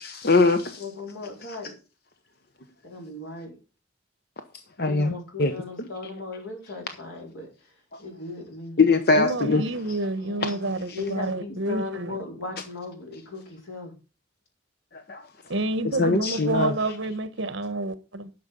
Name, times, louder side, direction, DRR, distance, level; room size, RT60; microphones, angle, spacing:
voice 1, 0.0-0.8 4.8-5.1 5.4-5.5 8.8-9.6 10.9-11.0 14.9-15.2 16.0-16.7, left 3 dB, 50° left, 0.9 m, -21 dB
voice 2, 0.8-1.8 2.8-3.6 4.8-7.7 8.0-8.8 10.2-13.9, left 3 dB, 85° left, 4.4 m, -37 dB
voice 3, 9.2-12.2 15.5-18.3, right 2 dB, 65° right, 1.2 m, -29 dB
11.0 x 6.4 x 5.3 m
head